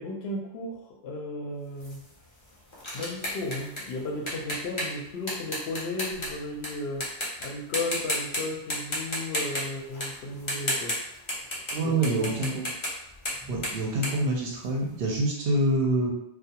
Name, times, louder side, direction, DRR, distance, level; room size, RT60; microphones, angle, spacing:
voice 1, 0.0-2.1 2.9-7.1 7.4-11.0 11.8-12.4, left 2 dB, 75° left, 1 dB, 0.8 m, -34 dB
sound 1, 1.8-6.7 7.0-7.5 7.7-8.4 8.7-11.8 12.0-15.0, left 1 dB, 30° left, 0.6 m, -33 dB
voice 2, 11.7-12.6 13.5-16.1, right 2 dB, 70° right, -1 dB, 0.7 m, -26 dB
2.3 x 2.1 x 2.8 m, 0.79 s
omnidirectional pair, 1.1 m